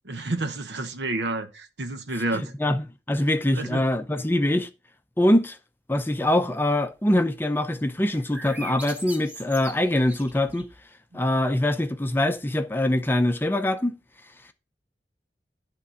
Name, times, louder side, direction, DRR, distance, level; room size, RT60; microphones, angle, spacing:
voice 1, 0.0-2.5 3.5-3.8 11.1-11.2, right 2 dB, 85° right, 1.1 m, -30 dB
voice 2, 2.6-4.7 5.2-5.6 5.9-10.7 11.1-14.0, left 1 dB, 10° left, 0.6 m, -23 dB
sound 1, 8.1-10.8, right 1 dB, 10° right, 1.9 m, -40 dB
11.0 x 3.7 x 7.0 m
head